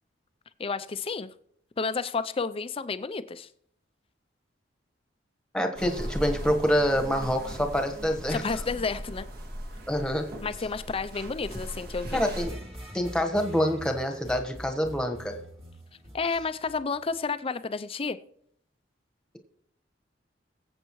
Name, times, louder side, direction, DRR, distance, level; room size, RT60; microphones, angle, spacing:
voice 1, 0.6-1.3 1.8-3.5 8.3-9.3 10.4-12.2 16.1-18.2, left 4 dB, 30° left, 13 dB, 0.5 m, -31 dB
voice 2, 5.5-8.4 9.9-10.3 12.1-12.5 12.9-15.3, equal, 5° left, 5 dB, 1.2 m, -26 dB
sound 1, 5.8-12.5, equal, 55° right, 1.8 m, -38 dB
sound 2, 12.1-17.1, right 1 dB, 35° right, 2.1 m, -44 dB
22.0 x 8.0 x 3.1 m, 0.70 s
head